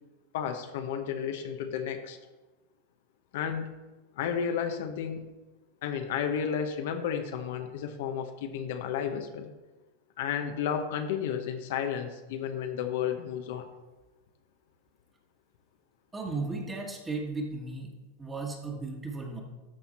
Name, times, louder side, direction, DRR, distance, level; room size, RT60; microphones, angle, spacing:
voice 1, 0.3-2.2 3.3-3.7 4.2-5.3 5.8-9.5 10.2-13.7, left 8 dB, 70° left, 6 dB, 0.8 m, -32 dB
voice 2, 16.1-17.9 18.2-19.4, right 3 dB, 15° right, 1 dB, 1.6 m, -35 dB
12.5 x 4.3 x 4.2 m, 1.2 s
supercardioid pair, 120°, 0 cm